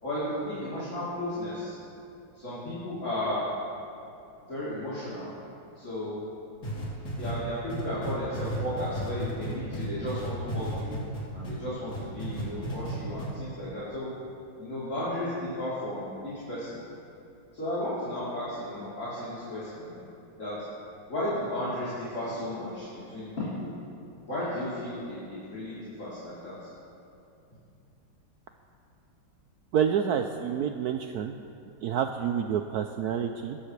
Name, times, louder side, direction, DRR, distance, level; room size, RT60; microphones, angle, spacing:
voice 1, 0.0-1.8 2.4-3.5 4.5-5.3 5.8-6.2 7.1-11.0 11.3-14.1 14.6-16.8 17.5-19.9 20.4-20.6 21.1-23.7 24.3-26.5, left 1 dB, 35° left, -12 dB, 3.9 m, -34 dB
sound 1, 6.6-11.6 11.9-12.9 13.2-13.3, right 1 dB, 55° left, 3.5 m, -34 dB
voice 2, 29.7-31.4 31.8-33.6, right 8 dB, 80° right, 6 dB, 0.8 m, -28 dB
20.0 x 13.5 x 3.3 m, 2.7 s
omnidirectional pair, 2.1 m